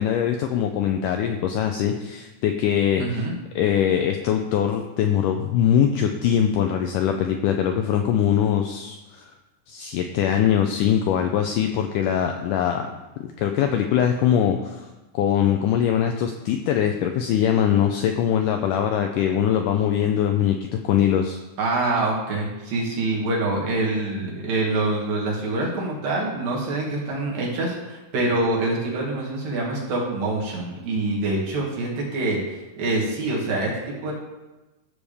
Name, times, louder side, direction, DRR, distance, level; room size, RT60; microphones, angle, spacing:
voice 1, 0.0-3.2 3.5-9.3 9.7-12.9 13.4-14.9 15.1-20.6 20.8-21.4, left 9 dB, 85° left, 4 dB, 1.8 m, -22 dB
voice 2, 3.0-3.3 21.6-34.1, right 2 dB, 70° right, -4 dB, 3.8 m, -25 dB
13.0 x 7.1 x 3.5 m, 1.1 s
omnidirectional pair, 4.3 m